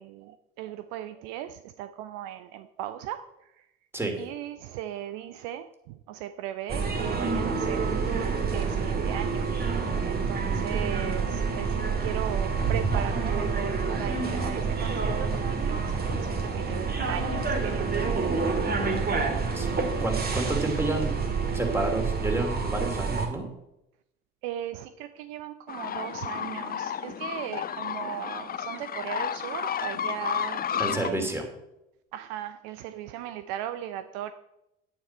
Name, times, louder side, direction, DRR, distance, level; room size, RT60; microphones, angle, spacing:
voice 1, 0.0-3.3 4.2-9.5 10.0-11.7 12.0-18.3 24.4-31.3 32.1-34.3, right 11 dB, 60° right, 11 dB, 0.6 m, -38 dB
sound 1, 6.7-23.3, right 4 dB, 30° right, 2.1 m, -28 dB
voice 2, 19.5-21.1 21.5-23.5 30.8-31.5, right 2 dB, 5° right, 2 dB, 2.8 m, -30 dB
sound 2, 25.7-31.1, left 9 dB, 30° left, 0.6 m, -32 dB
9.6 x 9.5 x 4.4 m, 0.85 s
figure-of-eight pair, 55°, 31 cm